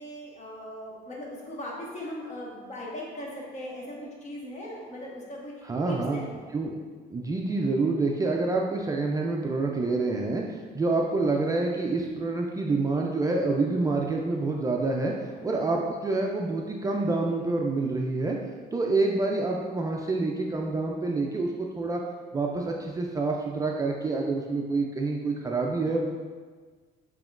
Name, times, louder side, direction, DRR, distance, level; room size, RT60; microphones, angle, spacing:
voice 1, 0.0-6.3 15.4-15.6, left 1 dB, 40° left, -4 dB, 1.3 m, -39 dB
voice 2, 5.6-6.2 6.5-6.8 7.1-18.4 18.7-22.0 22.3-26.1, right 3 dB, 20° right, 0 dB, 0.4 m, -27 dB
7.0 x 2.9 x 2.5 m, 1.5 s
cardioid pair, 110°, 17 cm